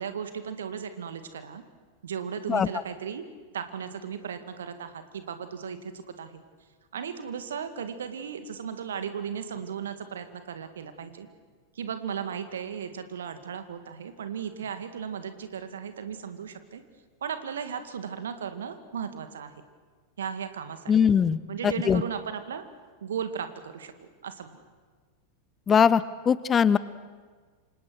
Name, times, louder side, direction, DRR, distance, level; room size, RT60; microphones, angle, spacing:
voice 1, 0.0-1.6 2.0-3.2 3.5-6.4 6.9-11.3 11.8-16.8 17.2-19.5 20.2-20.8 21.5-22.6 23.0-23.9 24.2-24.6, right 7 dB, 65° right, 9 dB, 2.2 m, -36 dB
voice 2, 20.9-22.0 25.7-26.8, left 7 dB, 20° left, 18 dB, 0.7 m, -21 dB
28.0 x 26.5 x 6.3 m, 1.5 s
figure-of-eight pair, 90°, 0 cm